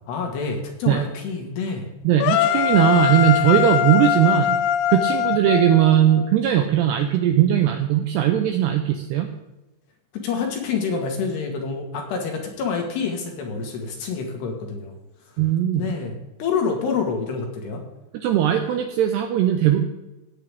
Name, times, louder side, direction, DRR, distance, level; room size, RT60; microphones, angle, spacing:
voice 1, 0.1-1.9 10.1-15.0 15.7-17.8, left 5 dB, 65° left, 2 dB, 3.3 m, -27 dB
voice 2, 2.0-4.6 4.9-9.3 15.4-15.9 18.1-19.9, right 11 dB, 80° right, 5 dB, 2.4 m, -19 dB
sound 1, 2.2-6.3, left 11 dB, 85° left, 3.1 m, -22 dB
17.0 x 9.0 x 3.5 m, 1.0 s
omnidirectional pair, 5.6 m